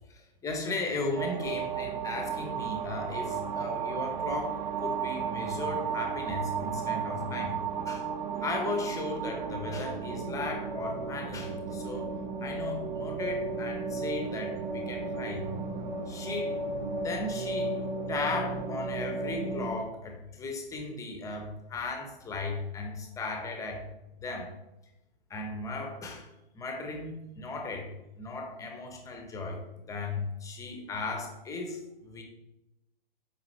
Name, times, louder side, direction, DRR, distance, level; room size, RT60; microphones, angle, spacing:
voice 1, 0.1-7.6 7.8-8.1 8.4-12.1 12.4-15.5 16.1-16.6 17.0-17.8 18.1-23.8 24.2-24.5 25.3-26.3 26.5-27.9 28.2-29.6 29.9-32.2, left 3 dB, 10° left, 3 dB, 0.9 m, -36 dB
sound 1, 1.2-19.7, right 5 dB, 50° right, 0.9 m, -34 dB
7.5 x 5.1 x 3.2 m, 0.94 s
hypercardioid pair, 130°, 30 cm